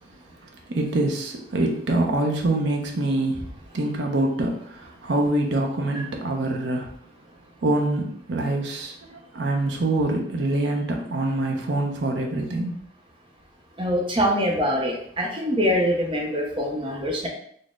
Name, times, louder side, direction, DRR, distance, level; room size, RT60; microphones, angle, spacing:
voice 1, 0.7-6.9 7.6-12.8, right 2 dB, 80° right, 1 dB, 0.6 m, -25 dB
voice 2, 13.8-17.3, equal, 30° right, -1 dB, 0.6 m, -24 dB
4.0 x 2.1 x 3.5 m, 0.65 s
head